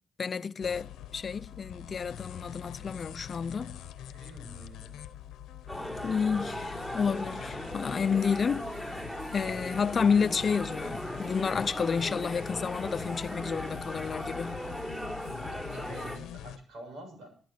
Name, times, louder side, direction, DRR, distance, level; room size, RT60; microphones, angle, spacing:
voice 1, 0.2-3.8 6.0-8.9 9.3-14.6, left 6 dB, 55° left, 0.7 m, -30 dB
sound 1, 0.6-16.6, left 10 dB, 90° left, 0.9 m, -44 dB
voice 2, 4.1-4.9 15.2-17.3, right 2 dB, 80° right, 7.1 m, -48 dB
sound 2, 5.7-16.2, equal, 15° right, 6.2 m, -38 dB
13.0 x 13.0 x 5.9 m
supercardioid pair, 60°, 0 cm